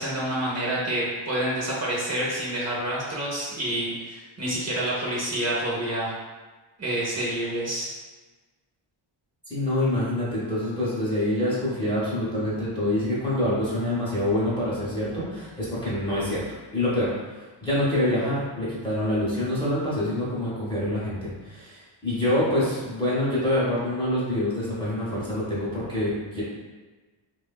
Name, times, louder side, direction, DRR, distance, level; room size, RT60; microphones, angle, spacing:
voice 1, 0.0-6.1 6.8-7.9, right 1 dB, 35° right, -5 dB, 0.6 m, -28 dB
voice 2, 9.5-16.4 16.7-26.4, left 1 dB, 10° left, -9 dB, 0.6 m, -26 dB
3.1 x 2.2 x 2.2 m, 1.3 s
wide cardioid pair, 140°, 49 cm